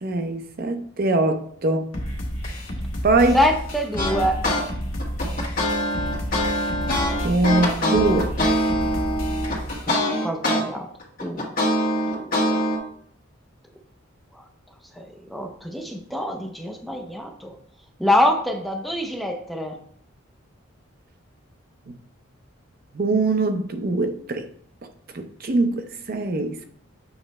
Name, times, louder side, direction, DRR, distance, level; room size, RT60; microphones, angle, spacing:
voice 1, 0.0-1.9 3.0-3.4 7.2-8.3 21.9-22.0 22.9-24.5 25.1-26.6, right 2 dB, 45° right, 0.5 m, -22 dB
sound 1, 1.9-9.9, equal, 70° left, 1.6 m, -31 dB
voice 2, 3.3-4.4 9.9-10.9 11.2-11.5 12.1-12.6 15.0-15.1 15.3-17.6 18.0-19.8, left 1 dB, ahead, 0.5 m, -25 dB
sound 2, 4.0-4.6 5.0-10.6 11.0-12.8, equal, 45° left, 1.7 m, -23 dB
7.1 x 3.1 x 4.2 m
head